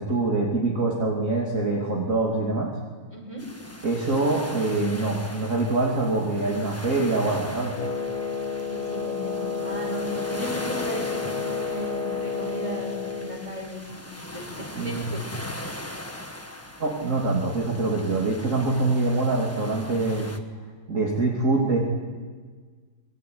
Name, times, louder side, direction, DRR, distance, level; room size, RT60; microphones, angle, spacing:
voice 1, 0.0-2.7 3.8-7.7 14.8-15.0 16.8-20.3 20.9-21.8, right 3 dB, 40° right, -3 dB, 3.4 m, -24 dB
voice 2, 3.1-3.5 8.7-15.4, right 1 dB, 15° right, 1 dB, 6.5 m, -36 dB
sound 1, 3.4-20.4, left 1 dB, 10° left, 1.3 m, -40 dB
Wind instrument woodwind instrument, 7.7-13.4, left 5 dB, 55° left, 3.1 m, -30 dB
27.0 x 22.0 x 9.6 m, 1.5 s
omnidirectional pair, 2.1 m